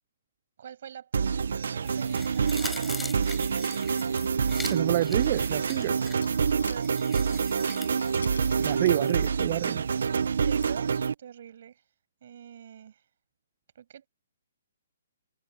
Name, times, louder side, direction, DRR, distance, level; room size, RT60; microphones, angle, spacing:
voice 1, 0.6-3.7 6.0-8.4 10.4-11.8 12.2-13.0 13.7-14.1, right 9 dB, 55° right, 7.5 m, -47 dB
sound 1, 1.1-11.1, right 6 dB, 70° right, 1.1 m, -27 dB
sound 2, 1.8-9.3 9.7-9.8, left 3 dB, 5° left, 6.2 m, -43 dB
sound 3, 3.5-4.6 5.0-7.0 7.3-9.4 9.7-9.8 10.6-10.7, left 4 dB, 90° left, 6.8 m, -47 dB
voice 2, 4.7-6.0 8.6-9.9, right 16 dB, 40° right, 0.4 m, -28 dB
hypercardioid pair, 145°, 0 cm